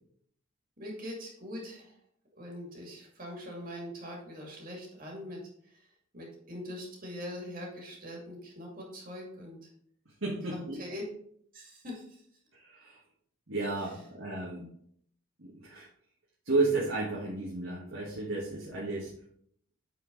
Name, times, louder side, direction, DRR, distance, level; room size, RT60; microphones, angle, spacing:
voice 1, 0.8-1.9 2.3-5.9 6.1-9.6 10.5-11.0 11.5-12.2, left 1 dB, 45° right, -1 dB, 2.3 m, -42 dB
voice 2, 10.2-10.8 12.5-13.0 13.5-14.6 15.4-15.9 16.4-19.1, right 3 dB, 75° right, -5 dB, 1.6 m, -32 dB
9.1 x 4.6 x 3.9 m, 0.65 s
head